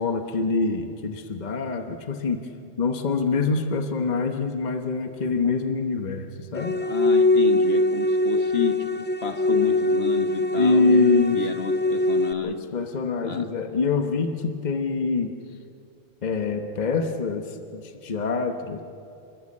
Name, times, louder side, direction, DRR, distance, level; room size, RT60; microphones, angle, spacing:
voice 1, 0.0-2.4 2.8-6.8 10.6-11.4 12.4-15.3 16.2-18.8, left 4 dB, 40° left, 6 dB, 1.2 m, -25 dB
sound 1, 6.6-12.3, left 2 dB, 15° left, 0.4 m, -22 dB
voice 2, 6.8-8.8 9.2-12.6 13.2-13.5, left 6 dB, 65° left, 6 dB, 1.6 m, -31 dB
28.5 x 13.0 x 8.6 m, 2.6 s
omnidirectional pair, 1.1 m